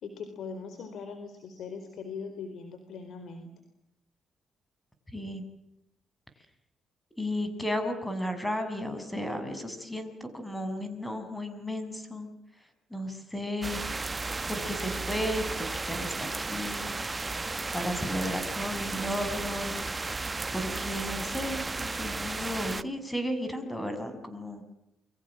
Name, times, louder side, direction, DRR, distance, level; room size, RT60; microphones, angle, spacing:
voice 1, 0.0-3.5, left 5 dB, 65° left, 8 dB, 4.3 m, -40 dB
voice 2, 5.1-5.4 7.2-12.3 12.9-13.8 14.5-16.9 17.7-20.1 20.5-24.6, equal, 10° left, 8 dB, 6.8 m, -34 dB
sound 1, 13.6-22.8, right 3 dB, 25° right, 1.1 m, -34 dB
29.5 x 23.5 x 7.5 m, 0.85 s
cardioid pair, 90°, 0 cm